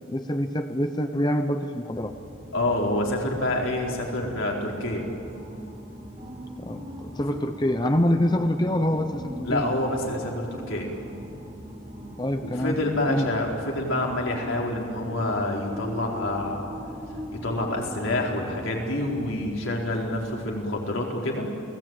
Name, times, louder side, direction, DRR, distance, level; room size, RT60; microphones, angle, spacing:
voice 1, 0.1-2.1 6.6-9.6 12.2-12.8 13.1-13.2, left 1 dB, 20° left, 7 dB, 0.9 m, -25 dB
sound 1, 1.9-20.3, equal, 35° right, 5.5 m, -41 dB
voice 2, 2.5-5.1 9.4-10.9 12.4-16.7 17.3-21.5, left 1 dB, 85° left, -1 dB, 4.5 m, -27 dB
30.0 x 18.0 x 9.2 m, 2.7 s
head